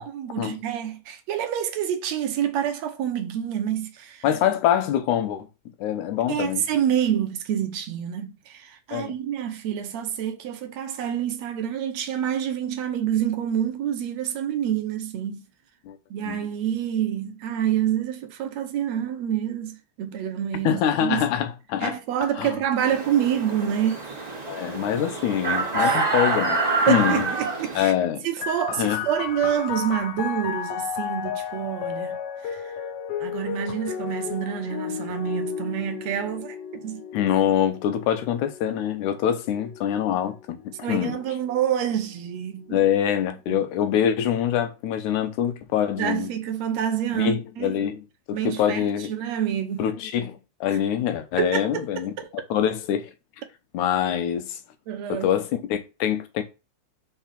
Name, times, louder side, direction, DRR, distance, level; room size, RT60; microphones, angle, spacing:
voice 1, 0.0-4.3 6.3-15.4 16.1-21.2 21.8-24.0 25.8-26.1 26.9-27.9 28.2-32.2 32.4-32.8 33.2-37.0 40.8-42.8 43.5-43.6 46.0-47.7 48.3-49.9 51.4-52.3 54.9-55.3, right 10 dB, 70° right, 2.0 m, -27 dB
voice 2, 4.2-5.5 5.8-6.6 8.9-9.1 15.9-16.0 16.3-16.4 20.6-22.0 22.4-22.6 24.5-27.3 27.8-28.3 28.8-29.0 37.1-41.2 42.7-46.3 47.1-49.1 49.8-52.1 52.5-53.1 53.7-54.6 55.1-56.4, left 10 dB, 85° left, 2.3 m, -25 dB
sound 1, 22.8-27.8, right 3 dB, 15° right, 1.5 m, -26 dB
sound 2, 28.4-41.6 42.5-43.3, left 8 dB, 70° left, 1.6 m, -34 dB
4.8 x 4.6 x 5.8 m
omnidirectional pair, 3.4 m